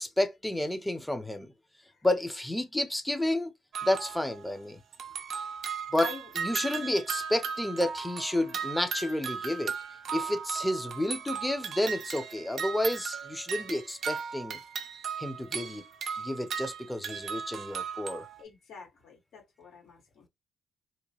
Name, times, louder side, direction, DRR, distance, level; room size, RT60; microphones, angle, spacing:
voice 1, 0.0-1.5 2.0-3.5 3.8-4.8 5.9-6.1 6.4-9.7 10.1-14.6 15.2-15.8 16.2-18.3, left 1 dB, 5° left, 0.6 m, -30 dB
sound 1, 3.7-4.6 4.9-18.4, right 6 dB, 60° right, 0.5 m, -37 dB
voice 2, 18.4-20.2, left 5 dB, 70° left, 1.7 m, -45 dB
2.8 x 2.2 x 3.0 m
cardioid pair, 90°, 0 cm